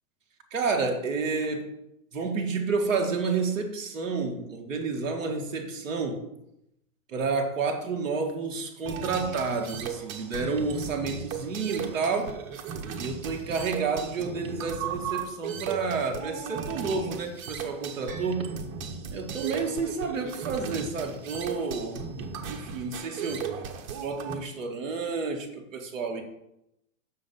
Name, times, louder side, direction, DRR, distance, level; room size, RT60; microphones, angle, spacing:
voice 1, 0.5-1.7 2.1-6.3 7.1-12.4 13.0-18.5 19.1-22.0 22.5-23.5 24.0-26.2, right 4 dB, 5° right, -9 dB, 0.4 m, -30 dB
sound 1, 8.9-24.3, right 6 dB, 25° right, 0.8 m, -36 dB
7.6 x 6.6 x 5.4 m, 0.84 s
supercardioid pair, 175°, 41 cm